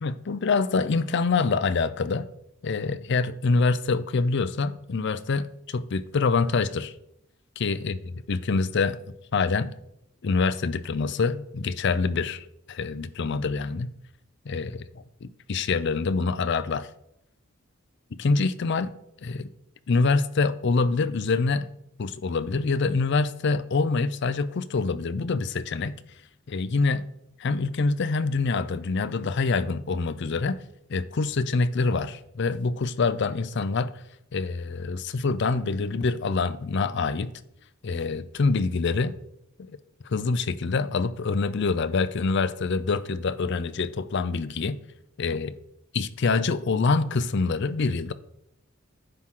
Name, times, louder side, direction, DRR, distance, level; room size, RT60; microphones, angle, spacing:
voice 1, 0.0-2.3 2.6-6.9 7.6-8.0 8.3-9.0 9.3-9.7 10.2-13.9 14.5-16.9 18.2-18.9 19.2-19.5 19.9-21.7 22.0-26.0 26.5-27.1 27.4-30.6 30.9-33.9 34.3-37.3 37.8-39.1 39.6-39.7 40.0-44.8 45.2-45.6 45.9-48.1, left 4 dB, 60° left, 0.5 m, -25 dB
9.9 x 6.2 x 3.8 m
head